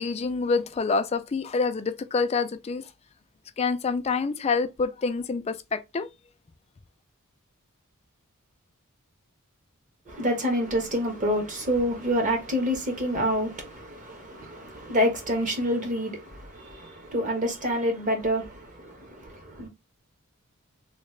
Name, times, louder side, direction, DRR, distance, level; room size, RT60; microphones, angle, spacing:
voice 1, 0.0-2.8 3.6-6.1, left 4 dB, 30° left, 0.4 m, -27 dB
voice 2, 10.1-19.7, equal, 40° right, 1.2 m, -27 dB
3.2 x 2.8 x 3.1 m
head